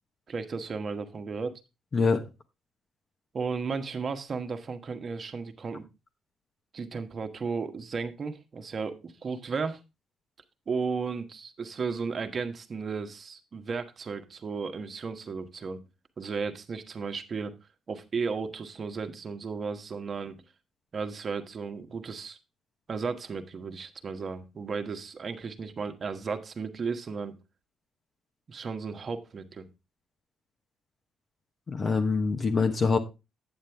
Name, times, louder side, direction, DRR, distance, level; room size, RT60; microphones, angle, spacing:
voice 1, 0.3-1.6 3.3-5.8 6.7-9.8 10.7-15.9 16.2-17.6 17.9-20.4 20.9-22.4 22.9-27.4 28.5-29.7, right 5 dB, 45° right, 1.2 m, -34 dB
voice 2, 1.9-2.2 31.7-33.0, left 4 dB, 40° left, 1.1 m, -24 dB
8.9 x 7.4 x 3.4 m
cardioid pair, 90°, 0 cm